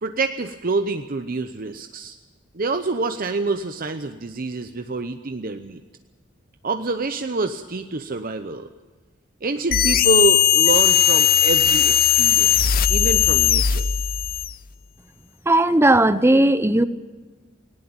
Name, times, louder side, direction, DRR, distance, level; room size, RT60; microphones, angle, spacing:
voice 1, 0.0-2.2 2.5-5.8 6.6-8.7 9.4-13.8, right 3 dB, 50° right, 7 dB, 0.8 m, -26 dB
sound 1, 9.7-14.6, left 9 dB, 50° left, 0.7 m, -18 dB
voice 2, 15.5-16.8, right 1 dB, 15° right, 13 dB, 0.8 m, -16 dB
18.5 x 18.0 x 8.8 m, 1.3 s
head